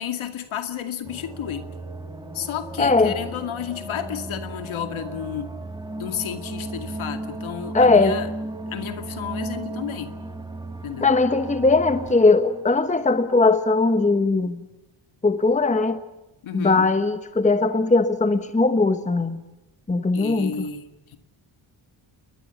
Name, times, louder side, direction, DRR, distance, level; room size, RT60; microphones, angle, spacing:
voice 1, 0.0-1.7 2.3-5.5 6.0-8.3 8.7-10.1 10.8-11.2 16.4-16.9 20.1-21.2, left 8 dB, 80° left, 8 dB, 2.4 m, -32 dB
sound 1, 1.0-13.1, right 2 dB, 10° right, 2.1 m, -35 dB
voice 2, 2.8-3.1 7.7-8.2 11.0-14.6 15.2-16.0 16.5-19.4 19.9-20.6, left 3 dB, 15° left, 10 dB, 1.2 m, -19 dB
29.0 x 22.5 x 7.1 m, 0.97 s
wide cardioid pair, 150°, 48 cm